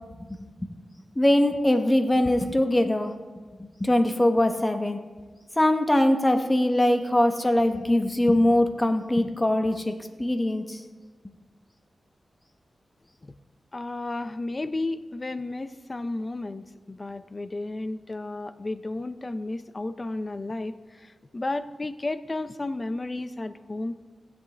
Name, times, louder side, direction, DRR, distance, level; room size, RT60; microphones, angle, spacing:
voice 1, 1.2-3.1 3.6-5.0 5.6-10.8, left 1 dB, 20° left, 6 dB, 0.9 m, -22 dB
voice 2, 13.7-23.9, left 2 dB, 35° left, 12 dB, 0.5 m, -33 dB
16.0 x 8.0 x 3.3 m, 1.4 s
cardioid pair, 70°, 0 cm